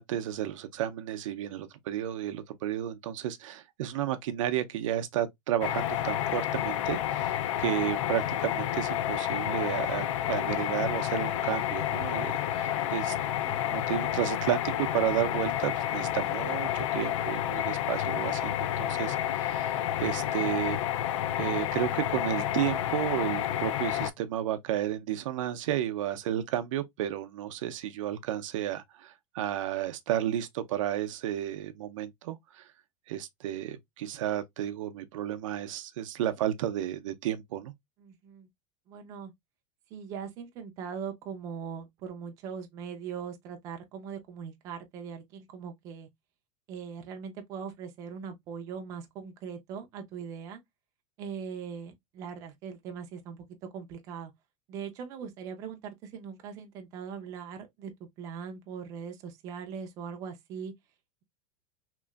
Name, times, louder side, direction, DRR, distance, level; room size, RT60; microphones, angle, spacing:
voice 1, 0.0-13.1 13.4-19.7 20.0-20.8 21.4-32.6 33.1-37.7, right 11 dB, 90° right, 0.5 m, -32 dB
sound 1, 5.6-24.1, left 11 dB, 75° left, 0.4 m, -30 dB
voice 2, 10.3-11.0 12.4-12.8 38.0-38.5 38.9-39.3 39.9-46.1 46.7-50.6 51.2-53.4 53.7-54.3 54.7-57.9 58.2-60.7, right 7 dB, 20° right, 0.3 m, -41 dB
2.9 x 2.5 x 2.2 m
supercardioid pair, 180°, 16 cm